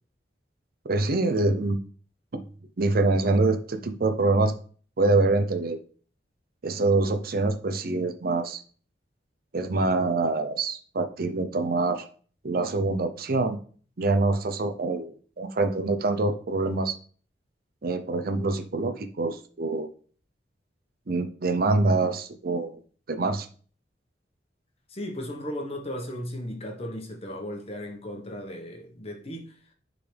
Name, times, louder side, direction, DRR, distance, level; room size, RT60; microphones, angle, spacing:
voice 1, 0.9-1.8 2.8-4.5 5.0-5.8 6.6-8.6 9.5-12.0 12.4-13.6 14.0-16.9 17.8-19.9 21.1-22.8 23.1-23.5, right 3 dB, 55° right, 0.7 m, -25 dB
voice 2, 24.9-29.6, left 1 dB, 35° left, 1.4 m, -36 dB
9.9 x 3.9 x 3.4 m
head